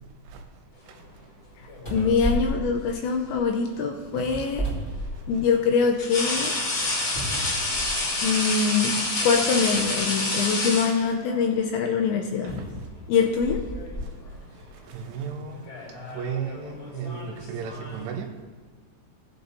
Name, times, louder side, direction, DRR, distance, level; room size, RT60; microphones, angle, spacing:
sound 1, 1.4-1.5 1.8-3.5 4.2-5.6 6.1-6.2 7.1-8.3 9.2-9.3 12.5-14.1 14.8-14.9, right 1 dB, 20° left, 2.6 m, -32 dB
sound 2, 1.7-2.5 4.3-4.5 6.0-11.4 12.6-12.8 13.2-14.0 14.3-14.6 15.5-18.1, left 2 dB, 45° left, 3.4 m, -29 dB
voice 1, 1.9-4.7 5.3-6.5 8.2-9.0 9.2-12.6 13.1-13.6, left 5 dB, 80° left, 2.7 m, -24 dB
voice 2, 14.9-15.7 16.1-18.4, right 6 dB, 75° right, 3.4 m, -34 dB
18.0 x 7.8 x 2.7 m
omnidirectional pair, 5.8 m